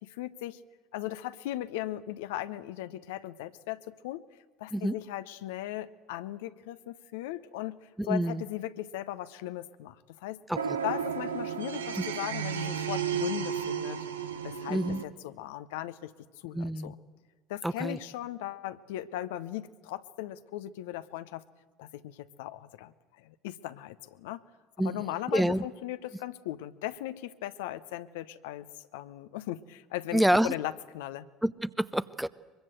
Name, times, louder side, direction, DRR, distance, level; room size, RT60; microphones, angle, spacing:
voice 1, 0.0-0.6 0.9-4.2 4.6-10.4 10.8-14.0 14.4-17.0 17.5-21.4 21.8-24.4 24.8-28.7 28.9-31.3, left 14 dB, 70° left, 12 dB, 0.8 m, -38 dB
voice 2, 8.0-8.4 10.5-10.8 12.0-12.1 14.7-15.0 16.5-16.9 17.6-18.0 24.8-25.0 25.3-25.7 30.1-30.5 31.4-32.3, right 1 dB, 5° right, 15 dB, 0.8 m, -27 dB
sound 1, 10.5-15.0, right 8 dB, 80° right, 1.2 m, -33 dB
23.0 x 23.0 x 8.0 m, 1.3 s
figure-of-eight pair, 60°, 0 cm